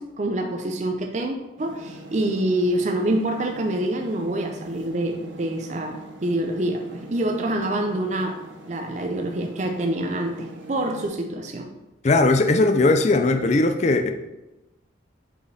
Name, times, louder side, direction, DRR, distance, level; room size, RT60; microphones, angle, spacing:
voice 1, 0.0-8.4 8.7-11.7, right 1 dB, 40° right, 3 dB, 0.5 m, -26 dB
sound 1, 1.6-11.1, right 1 dB, 80° right, 0.8 m, -43 dB
voice 2, 12.0-14.1, left 2 dB, 35° left, 7 dB, 0.4 m, -18 dB
5.1 x 5.0 x 4.0 m, 1.0 s
head